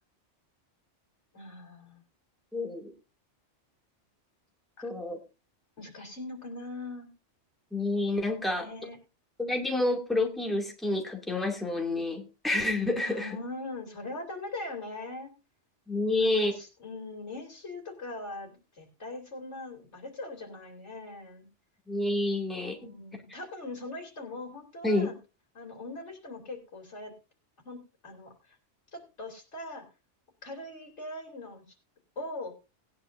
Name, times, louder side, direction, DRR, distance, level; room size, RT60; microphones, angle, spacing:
voice 1, 1.3-2.0 4.8-4.9 5.8-7.1 8.5-9.0 13.1-15.3 16.1-21.5 22.7-25.2 25.5-27.1 27.7-27.8 28.0-28.6 28.9-29.8 30.4-31.6 32.2-32.5, left 2 dB, 70° left, 2 dB, 3.6 m, -41 dB
voice 2, 2.5-2.9 4.8-5.2 7.7-8.7 9.4-13.4 15.9-16.5 21.9-22.9 24.8-25.1, left 2 dB, ahead, 1 dB, 2.3 m, -29 dB
19.0 x 9.7 x 2.6 m, 0.29 s
omnidirectional pair, 1.2 m